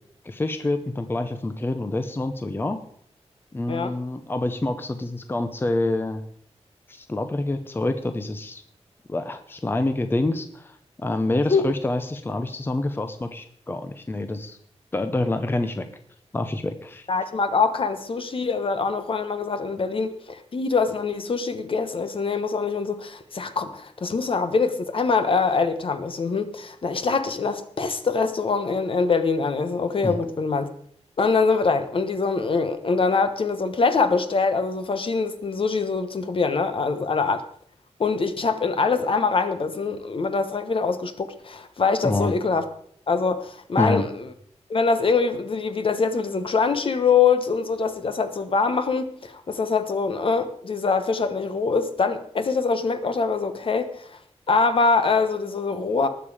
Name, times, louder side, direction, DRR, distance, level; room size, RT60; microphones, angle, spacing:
voice 1, 0.2-2.8 3.5-6.2 6.9-8.6 9.1-14.6 14.9-15.9 16.3-17.1 30.0-30.2 42.0-42.3 43.8-44.0, left 2 dB, 20° left, 0.7 m, -27 dB
voice 2, 17.1-30.7 31.2-37.4 38.0-42.6 43.1-44.3 44.7-54.2 54.5-56.1, left 4 dB, 50° left, 1.1 m, -24 dB
19.5 x 7.3 x 4.9 m
wide cardioid pair, 170°, 11 cm